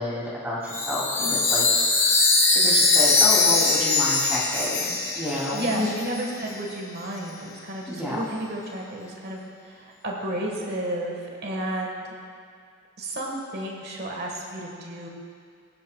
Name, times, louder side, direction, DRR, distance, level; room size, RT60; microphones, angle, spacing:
voice 1, 0.0-1.7 2.5-5.9 7.9-8.2, left 1 dB, 5° right, -6 dB, 2.6 m, -29 dB
Chime, 0.7-6.2, left 3 dB, 10° left, 0.9 m, -21 dB
voice 2, 5.5-12.1 13.0-15.1, right 1 dB, 45° right, -1 dB, 1.4 m, -32 dB
20.5 x 10.5 x 2.3 m, 2.3 s
head